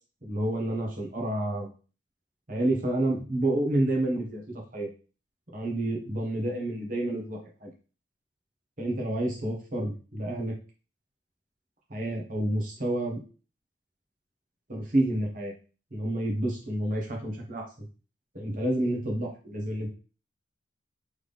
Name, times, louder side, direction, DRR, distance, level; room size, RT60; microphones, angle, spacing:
voice 1, 0.2-1.7 2.5-4.9 5.5-7.7 8.8-10.5 11.9-13.2 14.7-15.5 15.9-17.9 18.3-19.9, right 1 dB, 45° right, -1 dB, 1.3 m, -29 dB
3.8 x 3.5 x 3.4 m, 0.35 s
head